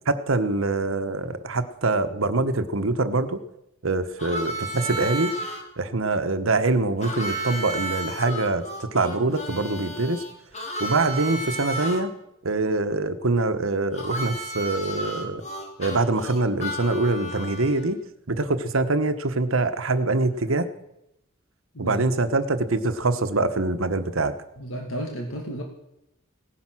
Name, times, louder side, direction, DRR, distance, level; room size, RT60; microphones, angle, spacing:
voice 1, 0.1-3.4 3.8-5.3 5.8-10.2 10.8-12.1 12.4-15.4 15.8-18.0 18.3-20.7 21.8-24.3, right 2 dB, 80° right, 10 dB, 1.2 m, -24 dB
Harmonica, 4.2-5.6 7.0-12.0 13.9-17.9, right 1 dB, 35° left, 2.2 m, -33 dB
voice 2, 21.7-22.1 24.6-25.6, right 1 dB, 70° left, 1 dB, 2.0 m, -32 dB
17.5 x 10.0 x 6.2 m, 0.85 s
head